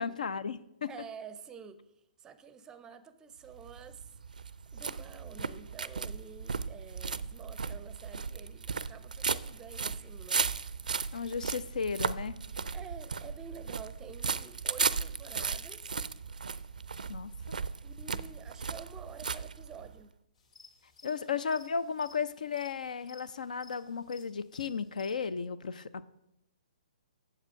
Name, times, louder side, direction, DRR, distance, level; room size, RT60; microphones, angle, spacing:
voice 1, 0.0-0.9 11.1-12.4 17.1-17.3 21.0-26.1, left 6 dB, 70° left, 0.5 m, -34 dB
voice 2, 0.9-1.8 2.2-4.1 4.7-10.5 12.7-16.0 17.8-20.1 21.2-21.4 22.0-22.1, right 6 dB, 15° right, 0.5 m, -49 dB
sound 1, 3.5-20.0, right 5 dB, 80° right, 0.4 m, -36 dB
sound 2, 20.4-25.3, left 5 dB, 55° left, 2.5 m, -57 dB
8.0 x 7.2 x 5.7 m
figure-of-eight pair, 130°, 4 cm